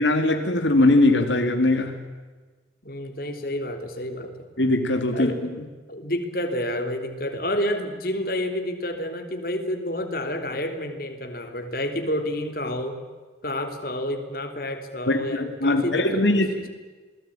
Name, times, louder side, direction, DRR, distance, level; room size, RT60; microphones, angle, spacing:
voice 1, 0.0-2.0 4.6-5.3 15.1-16.7, left 2 dB, 85° left, 2.2 m, -21 dB
voice 2, 2.8-4.3 5.1-5.5 5.9-13.0 13.4-16.4, left 1 dB, 50° left, 3.3 m, -29 dB
27.5 x 20.0 x 8.9 m
head